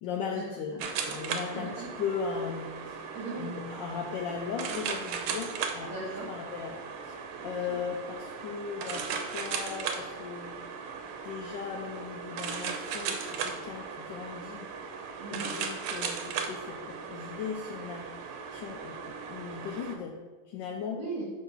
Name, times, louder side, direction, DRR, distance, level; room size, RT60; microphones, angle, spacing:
voice 1, 0.0-3.0 3.4-5.9 6.3-7.2 7.4-10.6 11.2-14.7 15.3-18.1 18.5-20.1 20.5-21.0, left 6 dB, 75° left, 2 dB, 1.1 m, -37 dB
sound 1, 0.8-20.0, right 6 dB, 80° right, 1.5 m, -37 dB
voice 2, 1.5-2.1 2.8-3.5 5.8-6.3 7.4-7.8 15.2-15.5 20.9-21.3, right 3 dB, 65° right, -6 dB, 1.9 m, -39 dB
6.1 x 3.5 x 5.6 m, 1.3 s
omnidirectional pair, 2.3 m